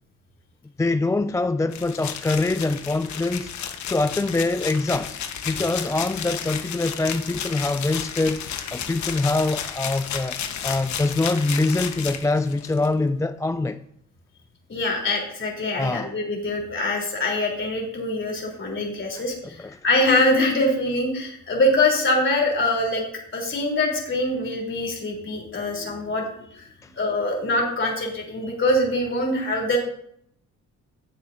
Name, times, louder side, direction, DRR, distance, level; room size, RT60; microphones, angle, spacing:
voice 1, 0.8-3.5 3.9-5.2 5.4-10.4 10.6-13.8 15.7-16.1 19.1-19.8 26.8-26.9, left 2 dB, 10° left, 0.3 m, -24 dB
sound 1, 1.7-12.9, left 8 dB, 70° left, 1.2 m, -32 dB
voice 2, 14.7-23.0 23.3-26.3 26.5-26.7 27.0-29.8, left 1 dB, 40° left, 3.6 m, -24 dB
15.5 x 7.2 x 2.7 m
cardioid pair, 90°, 30 cm